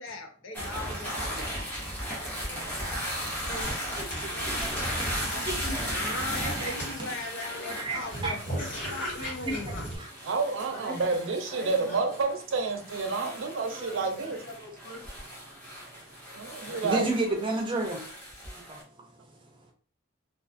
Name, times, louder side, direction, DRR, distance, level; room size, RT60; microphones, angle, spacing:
voice 1, 0.0-1.6 5.9-9.9, left 2 dB, 80° left, 0.6 m, -38 dB
sound 1, 0.5-18.8, equal, 10° left, 0.8 m, -36 dB
voice 2, 2.5-3.0 4.6-5.9 6.6-6.7 7.7-8.4 9.2-10.1 10.8-10.9 15.8-18.0 18.6-18.8 19.1-19.5, right 2 dB, 25° right, 0.5 m, -34 dB
voice 3, 3.4-5.5 10.7-11.1 11.5-12.2 13.2-15.1 16.6-17.4, equal, 40° left, 1.1 m, -45 dB
sound 2, 3.6-10.0, equal, 60° left, 1.5 m, -39 dB
voice 4, 10.2-14.4 16.3-17.1, right 4 dB, 75° right, 0.5 m, -29 dB
2.4 x 2.4 x 2.5 m
head